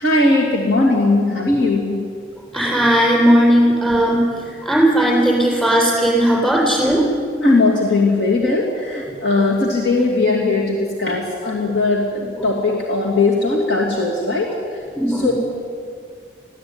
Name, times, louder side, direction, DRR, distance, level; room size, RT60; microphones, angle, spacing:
voice 1, 0.0-2.1 6.9-7.0 7.4-15.3, left 2 dB, 75° left, -2 dB, 2.7 m, -19 dB
voice 2, 2.5-7.0 15.0-15.3, right 1 dB, 5° left, -3 dB, 7.1 m, -16 dB
21.5 x 15.5 x 9.6 m, 2.2 s
head